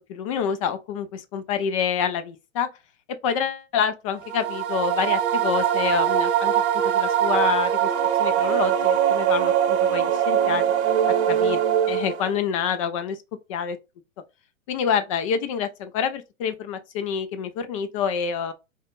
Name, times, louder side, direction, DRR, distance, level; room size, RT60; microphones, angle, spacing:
voice 1, 0.1-2.7 3.2-7.9 8.2-10.6 11.3-11.6 11.9-13.2 13.5-13.8 14.7-18.5, left 7 dB, 25° left, 0.4 m, -27 dB
sound 1, 4.2-12.4, right 9 dB, 55° right, 0.8 m, -22 dB
4.8 x 2.2 x 2.5 m
figure-of-eight pair, 110°, 40 cm